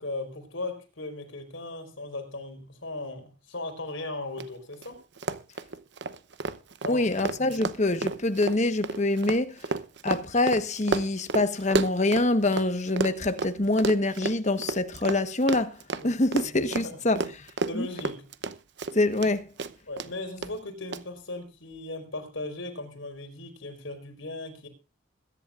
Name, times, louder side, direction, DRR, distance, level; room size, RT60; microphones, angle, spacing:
voice 1, 0.0-5.0 6.8-7.1 7.5-7.6 16.0-16.2 16.7-17.0 17.7-18.3 19.9-24.7, left 2 dB, 75° left, 4.5 m, -37 dB
Run, 4.4-4.5 4.7-4.9 5.2-12.7 13.0-19.3 19.6-20.1 20.4-20.5 20.9-21.0, right 3 dB, 60° right, 0.9 m, -31 dB
voice 2, 6.9-9.7 10.0-17.5 17.7-17.9 18.9-19.5, left 2 dB, 35° left, 1.2 m, -25 dB
22.0 x 10.5 x 2.5 m
head